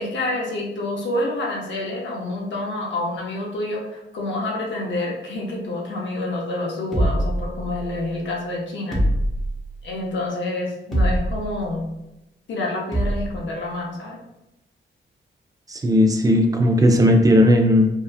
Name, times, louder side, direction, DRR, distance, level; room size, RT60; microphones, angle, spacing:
voice 1, 0.0-9.0 9.8-11.9 12.5-14.2, left 2 dB, 70° left, -1 dB, 0.6 m, -28 dB
sound 1, 6.9-8.0 8.9-9.8 10.9-11.6 12.9-13.4, right 1 dB, ahead, 0.8 m, -23 dB
voice 2, 15.7-17.9, left 1 dB, 20° right, 3 dB, 0.4 m, -16 dB
2.7 x 2.3 x 2.3 m, 0.92 s
cardioid pair, 105°, 19 cm